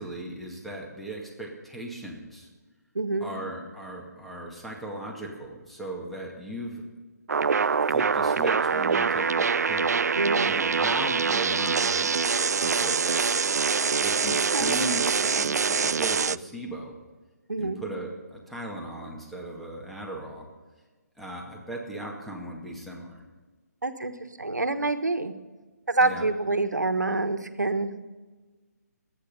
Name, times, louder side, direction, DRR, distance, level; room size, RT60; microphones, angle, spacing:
voice 1, 0.0-2.5 3.2-6.8 7.9-12.2 12.6-13.4 14.0-17.0 17.6-20.5 21.2-23.2 26.0-26.3, right 1 dB, ahead, -1 dB, 2.0 m, -37 dB
voice 2, 2.9-3.3 10.2-10.5 14.5-14.7 17.5-17.8 23.8-24.1 24.4-25.3 25.9-27.9, right 2 dB, 90° right, 9 dB, 1.4 m, -26 dB
sound 1, 7.3-16.4, right 5 dB, 70° right, 0.4 m, -24 dB
23.0 x 9.4 x 5.5 m, 1.3 s
figure-of-eight pair, 145°, 9 cm